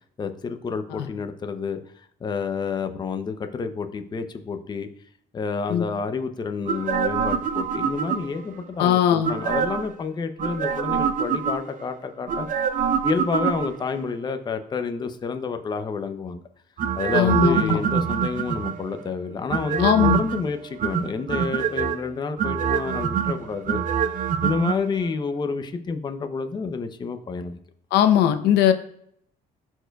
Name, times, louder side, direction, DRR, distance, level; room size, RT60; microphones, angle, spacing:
voice 1, 0.2-1.8 2.2-4.9 5.3-12.5 13.0-16.4 17.0-23.8 24.4-27.6, left 5 dB, 25° left, 8 dB, 0.6 m, -29 dB
sound 1, 6.7-8.5 9.2-9.9 10.4-11.8 12.3-14.0 16.8-18.9 19.5-20.4 20.8-22.0 22.4-24.7 25.0-25.1, right 7 dB, 50° right, 0.6 m, -25 dB
voice 2, 8.8-9.3 17.1-17.8 19.8-20.2 27.9-28.7, left 10 dB, 80° left, 8 dB, 0.7 m, -19 dB
12.5 x 4.4 x 2.3 m, 0.69 s
cardioid pair, 110°, 17 cm